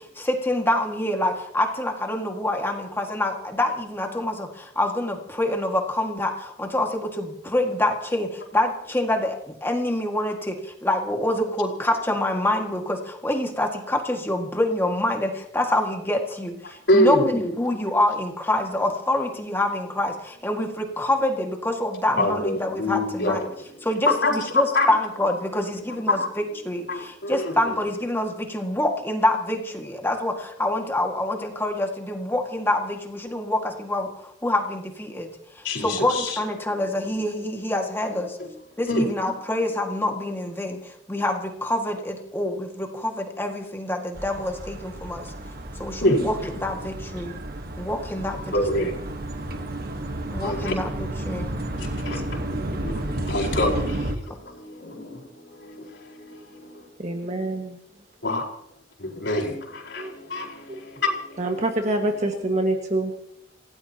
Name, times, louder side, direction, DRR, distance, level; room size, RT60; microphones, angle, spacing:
voice 1, 0.2-8.3 8.5-10.5 10.8-16.5 16.9-23.4 23.8-26.2 26.6-34.1 34.4-35.3 35.8-38.3 38.8-40.8 41.1-45.2 45.8-47.3 47.8-48.3 50.3-51.5, left 1 dB, 15° left, 1.9 m, -26 dB
voice 2, 16.9-17.4 22.2-24.9 25.9-26.3 26.9-27.8 35.6-36.4 38.2-38.5 38.9-39.1 46.0-46.2 48.5-48.8 49.5-49.6 50.4-50.7 51.8-55.1 55.4-56.9 58.2-58.5 59.0-61.6, left 1 dB, 75° left, 4.6 m, -26 dB
sound 1, 44.2-54.2, right 1 dB, 55° right, 1.4 m, -32 dB
voice 3, 57.0-57.8 60.0-60.1 60.7-60.8 61.4-63.1, right 1 dB, 40° right, 1.7 m, -26 dB
28.0 x 17.0 x 2.9 m
head